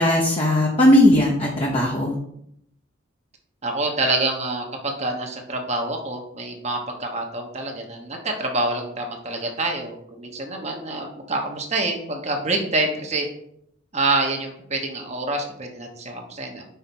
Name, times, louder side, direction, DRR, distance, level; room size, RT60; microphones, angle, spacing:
voice 1, 0.0-2.2, left 1 dB, 30° left, -2 dB, 0.9 m, -18 dB
voice 2, 3.6-13.3 13.9-16.6, right 2 dB, 35° right, 2 dB, 1.1 m, -26 dB
5.7 x 4.3 x 5.9 m, 0.72 s
head